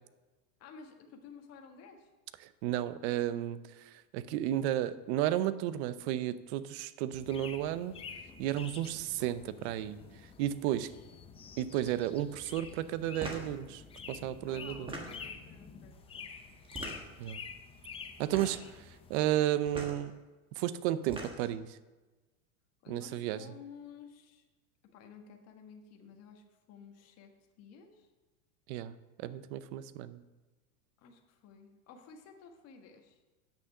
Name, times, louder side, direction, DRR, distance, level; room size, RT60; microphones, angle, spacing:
voice 1, 0.6-2.1 10.7-11.1 14.5-16.6 22.8-24.4 24.8-28.1 31.0-33.2, left 6 dB, 40° left, 3 dB, 1.4 m, -53 dB
voice 2, 2.6-7.9 8.4-10.0 10.4-10.9 11.6-13.8 14.1-14.9 17.2-17.4 18.2-20.1 20.6-21.8 22.9-23.4 28.7-30.2, right 12 dB, 50° right, 15 dB, 0.7 m, -33 dB
sound 1, 7.1-19.4, left 6 dB, 15° left, 0.5 m, -48 dB
sound 2, 13.2-13.5 14.7-15.4 16.6-17.2 18.2-18.7 19.7-20.0 20.9-21.6, right 2 dB, 10° right, 1.5 m, -41 dB
8.5 x 6.4 x 6.6 m, 1.2 s
supercardioid pair, 140°, 41 cm